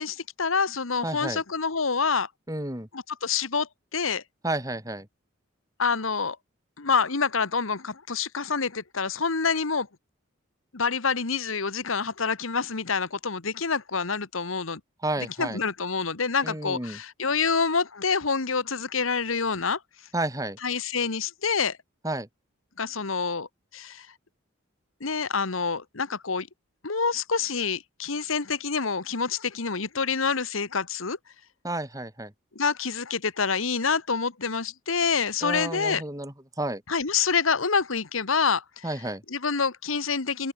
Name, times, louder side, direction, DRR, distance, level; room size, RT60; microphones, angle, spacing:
voice 1, 0.0-2.3 2.9-4.2 5.8-6.4 6.8-9.9 10.7-14.8 15.4-19.8 20.6-21.8 22.8-23.5 23.7-24.1 25.0-26.5 26.8-31.2 32.5-36.0 36.9-38.8 39.3-40.5, left 5 dB, 80° left, 1.5 m, -27 dB
voice 2, 1.0-1.4 2.5-2.9 4.4-5.1 15.0-15.6 16.4-17.0 20.1-20.6 22.0-22.3 31.6-32.3 35.4-36.8 38.8-39.2, right 1 dB, 15° right, 4.1 m, -31 dB
open air
head